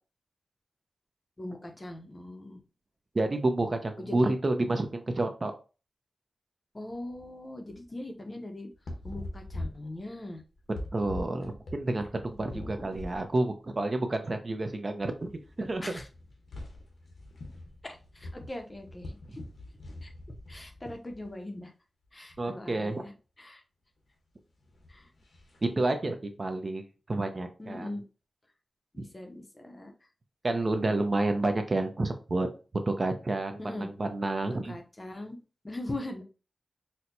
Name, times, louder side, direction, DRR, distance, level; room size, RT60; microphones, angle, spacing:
voice 1, 1.4-2.6 4.0-4.3 6.7-8.7 9.0-10.4 12.4-13.0 15.8-16.1 17.8-19.2 20.0-20.1 20.5-21.7 22.1-23.1 23.4-23.6 24.9-25.0 27.6-28.0 28.9-29.9 33.6-33.9 34.6-35.4 35.6-36.2, left 1 dB, 25° left, 4 dB, 0.6 m, -40 dB
voice 2, 3.1-5.5 10.9-15.3 15.6-16.0 22.4-23.1 25.6-26.8 27.1-28.0 29.0-29.1 30.4-32.5 32.9-34.7, right 2 dB, 35° right, 6 dB, 0.4 m, -29 dB
sound 1, 6.9-7.3 7.7-7.9 8.7-13.3 13.6-13.8 14.6-14.7 15.0-21.3 22.0-22.5 24.6-25.7, left 1 dB, 75° left, 0.8 m, -43 dB
4.3 x 2.1 x 2.6 m, 0.34 s
wide cardioid pair, 120°, 0 cm